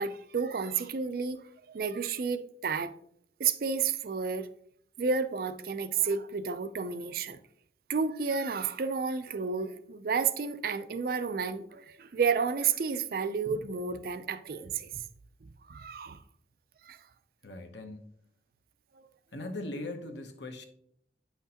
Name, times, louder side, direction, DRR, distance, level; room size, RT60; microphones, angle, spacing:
voice 1, 0.0-3.0 3.4-4.5 5.0-7.4 7.9-15.0 15.7-16.2 16.8-17.0, right 5 dB, 55° right, 0.4 m, -31 dB
voice 2, 17.4-18.1 19.3-20.7, left 2 dB, 80° left, 0.9 m, -40 dB
8.9 x 5.8 x 2.9 m
head